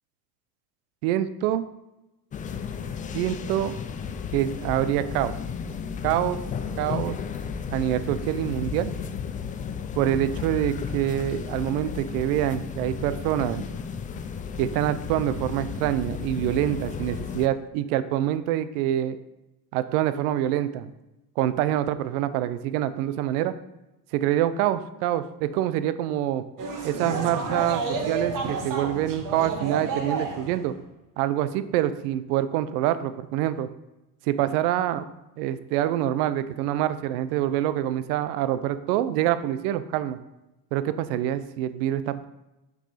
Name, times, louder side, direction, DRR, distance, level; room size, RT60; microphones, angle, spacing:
voice 1, 1.0-1.7 3.1-3.7 4.3-5.4 6.0-6.4 6.8-7.2 7.7-8.9 10.0-13.6 14.6-19.2 19.7-20.9 21.4-23.5 24.1-26.4 26.8-30.7 31.2-33.7 34.3-35.0 35.4-40.2 40.7-42.3, right 12 dB, 70° right, 13 dB, 0.6 m, -26 dB
sound 1, 2.3-17.5, left 6 dB, 20° left, 0.3 m, -33 dB
sound 2, 26.6-30.7, right 4 dB, 45° right, 1.3 m, -30 dB
6.0 x 5.4 x 4.2 m, 0.98 s
supercardioid pair, 95°, 46 cm